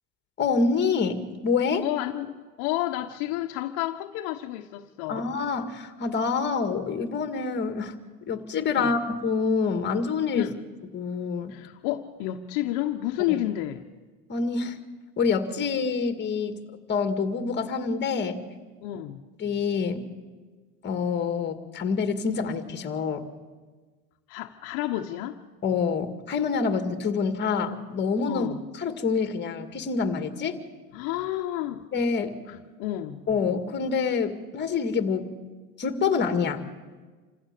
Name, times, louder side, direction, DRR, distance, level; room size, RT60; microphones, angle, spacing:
voice 1, 0.4-1.9 5.1-7.9 8.3-10.5 10.9-11.5 13.3-13.4 14.3-14.8 15.2-16.6 16.9-18.4 19.4-20.0 20.8-23.2 25.6-28.5 28.8-30.6 31.9-32.4 33.3-35.3 35.8-36.6, left 5 dB, 25° left, 2.0 m, -26 dB
voice 2, 1.8-5.3 8.7-8.9 10.3-10.6 11.5-13.8 18.8-19.2 24.3-25.4 28.3-28.6 30.9-31.9 32.5-33.2, left 14 dB, 55° left, 1.2 m, -30 dB
27.5 x 15.5 x 6.8 m
supercardioid pair, 125°, 45 cm